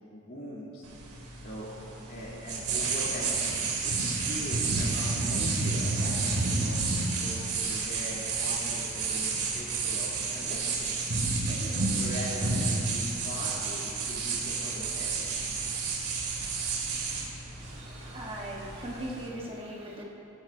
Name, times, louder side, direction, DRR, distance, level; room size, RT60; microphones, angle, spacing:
voice 1, 0.1-0.8 1.4-1.7 2.1-3.4 3.8-6.8 7.1-10.9 11.4-15.3, equal, 40° left, -6 dB, 3.3 m, -41 dB
sound 1, 0.8-19.3, right 4 dB, 90° right, 2.5 m, -30 dB
voice 2, 17.6-20.0, right 1 dB, 25° right, -3 dB, 1.2 m, -39 dB
19.0 x 14.0 x 2.7 m, 2.9 s
head